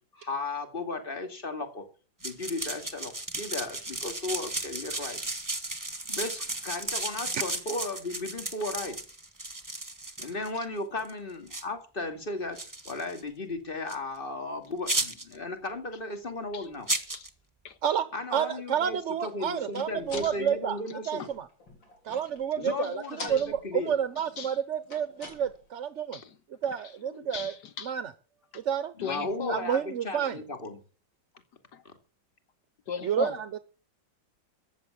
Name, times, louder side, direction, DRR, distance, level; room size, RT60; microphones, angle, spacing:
voice 1, 0.1-1.8 2.2-5.2 6.1-9.0 10.2-12.6 12.8-16.9 18.1-21.3 22.6-23.9 29.0-30.8 31.8-31.9, left 2 dB, 30° left, 2.7 m, -35 dB
sound 1, 2.2-10.5 11.0-11.1 11.5-11.6 12.6-13.2 13.9-14.0 14.9-15.4 16.9-17.3, right 2 dB, 10° right, 1.5 m, -34 dB
voice 2, 18.3-20.8 21.1-21.5 22.0-26.2 26.6-27.5 27.8-28.1 28.5-28.9 29.5-30.4 33.0-33.6, right 8 dB, 50° right, 0.9 m, -30 dB
sound 2, 18.8-22.5 22.8-24.0 24.7-25.8, left 2 dB, 85° left, 4.6 m, -46 dB
voice 3, 27.2-27.9 29.0-29.6 31.7-31.8 32.9-33.3, left 7 dB, 65° left, 1.4 m, -37 dB
14.5 x 9.3 x 7.4 m
omnidirectional pair, 2.0 m